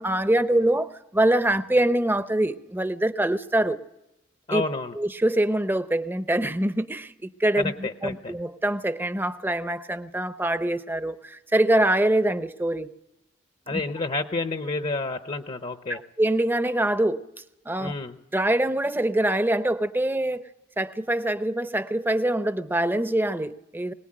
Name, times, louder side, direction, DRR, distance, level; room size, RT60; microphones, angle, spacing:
voice 1, 0.0-3.8 4.5-4.6 5.0-12.9 13.7-13.8 15.9-17.2 17.7-17.9 18.3-20.4 20.8-23.9, right 1 dB, 10° right, 11 dB, 0.8 m, -24 dB
voice 2, 4.5-5.0 7.6-8.3 13.7-16.0 17.8-18.2, left 3 dB, 35° left, 8 dB, 0.9 m, -30 dB
22.5 x 19.0 x 8.8 m, 0.90 s
head